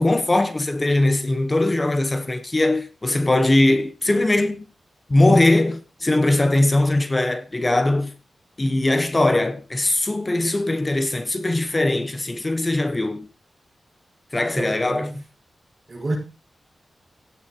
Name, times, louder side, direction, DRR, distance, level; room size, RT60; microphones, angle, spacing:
voice 1, 0.0-4.7 5.1-8.1 8.6-13.3 14.3-15.2, left 2 dB, 20° left, 1.2 m, -20 dB
voice 2, 14.5-15.2 15.9-16.1, right 2 dB, 30° right, 6.9 m, -29 dB
16.5 x 6.8 x 4.7 m
wide cardioid pair, 165°, 0 cm